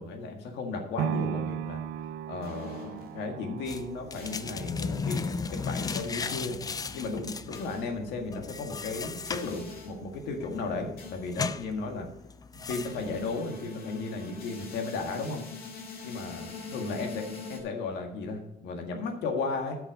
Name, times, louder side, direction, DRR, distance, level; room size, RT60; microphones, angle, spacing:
voice 1, 0.0-1.8 2.3-6.6 6.9-12.1 12.5-15.4 16.0-19.8, left 3 dB, 85° left, 4 dB, 1.9 m, -35 dB
sound 1, 1.0-9.1 9.6-9.7, right 9 dB, 90° right, 0.5 m, -39 dB
sound 2, 2.4-3.3 4.1-4.6 5.8-6.7 7.5-8.0 9.3-10.0 11.0-11.3 12.7-17.6, left 4 dB, 60° left, 2.1 m, -43 dB
sound 3, 3.7-13.3, left 5 dB, 20° left, 0.4 m, -36 dB
11.5 x 6.0 x 5.4 m, 0.90 s
cardioid pair, 110°, 17 cm